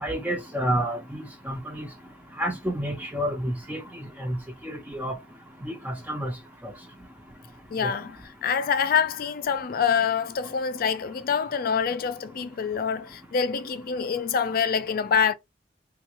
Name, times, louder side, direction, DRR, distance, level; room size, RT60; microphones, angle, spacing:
voice 1, 0.0-1.9 2.4-3.8 4.2-4.4 4.9-5.1 5.6-6.3 7.8-7.9, right 1 dB, 10° right, 0.5 m, -29 dB
voice 2, 7.7-15.3, left 6 dB, 55° left, 0.4 m, -26 dB
3.4 x 2.4 x 2.9 m
head